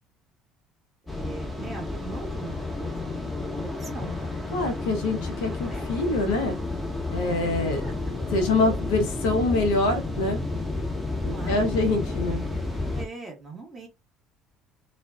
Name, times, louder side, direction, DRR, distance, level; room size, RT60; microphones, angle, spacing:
voice 1, 1.0-3.0 3.5-4.3 5.7-5.9 7.7-8.8 11.3-12.2 12.9-13.9, right 3 dB, 30° right, 1.1 m, -41 dB
sound 1, 1.1-13.1, left 2 dB, 10° left, 0.8 m, -31 dB
voice 2, 4.5-6.6 7.1-7.8 8.3-10.4 11.2-12.4, left 2 dB, 65° left, 0.7 m, -25 dB
2.5 x 2.2 x 2.2 m
figure-of-eight pair, 55°, 0 cm